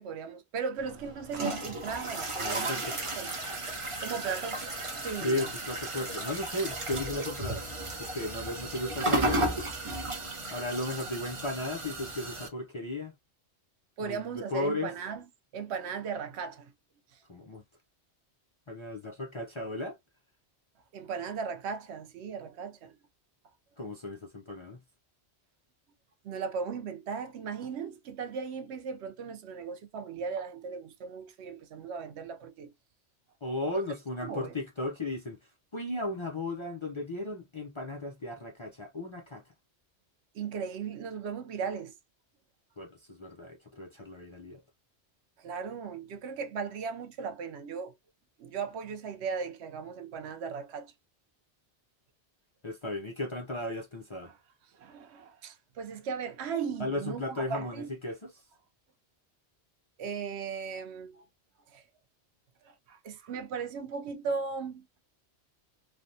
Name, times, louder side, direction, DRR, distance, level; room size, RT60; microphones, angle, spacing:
voice 1, 0.0-2.9 3.2-3.3 4.0-5.5 14.0-15.2 15.5-16.7 20.9-23.0 26.2-32.7 34.2-34.5 40.3-42.0 45.4-47.9 48.4-50.9 54.2-54.4 54.7-57.9 60.0-61.3 61.7-61.8 62.6-64.8, right 6 dB, 75° right, 0.9 m, -37 dB
sound 1, 0.8-12.5, right 1 dB, 30° right, 0.7 m, -34 dB
voice 2, 2.4-3.1 4.2-4.4 5.2-7.7 8.0-9.6 10.5-13.1 14.0-14.9 17.3-17.6 18.7-20.0 23.8-24.8 33.4-35.4 35.7-39.4 42.8-44.6 52.6-54.3 56.8-58.3, left 1 dB, 35° left, 0.5 m, -35 dB
3.3 x 2.2 x 2.6 m
omnidirectional pair, 1.1 m